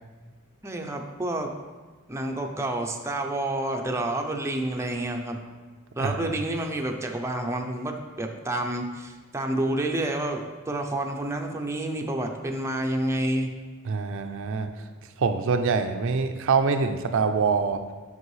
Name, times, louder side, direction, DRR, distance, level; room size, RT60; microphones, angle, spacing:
voice 1, 0.6-1.5 2.1-5.4 6.0-13.5, right 1 dB, 15° right, 2 dB, 0.5 m, -29 dB
voice 2, 6.0-6.3 13.9-14.7 15.2-17.8, right 5 dB, 65° right, 7 dB, 0.4 m, -25 dB
7.9 x 5.3 x 3.2 m, 1.3 s
head